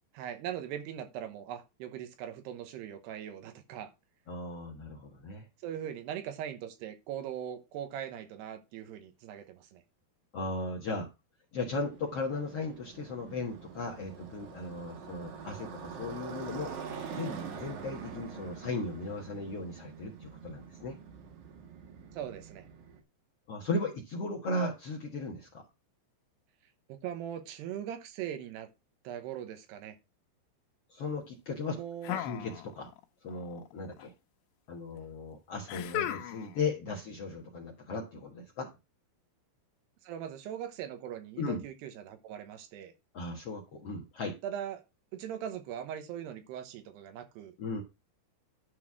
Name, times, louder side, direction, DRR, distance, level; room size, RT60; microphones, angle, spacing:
voice 1, 0.1-3.9 5.6-9.8 22.1-22.7 26.9-28.7 29.0-30.0 31.8-32.3 40.0-42.9 44.4-44.8 45.1-47.5, right 10 dB, 80° right, 3.2 m, -40 dB
voice 2, 4.3-5.5 10.3-11.1 11.5-21.0 23.5-25.6 30.9-31.7 32.1-32.9 33.2-34.1 34.7-38.7 41.4-41.6 43.1-44.3 47.6-47.8, left 3 dB, 60° left, 1.6 m, -36 dB
Motorcycle, 11.6-23.0, right 6 dB, 60° right, 2.4 m, -45 dB
sound 1, 32.0-33.0 33.3-34.1 35.7-36.6, left 12 dB, 90° left, 3.1 m, -36 dB
11.5 x 4.2 x 6.1 m
omnidirectional pair, 4.8 m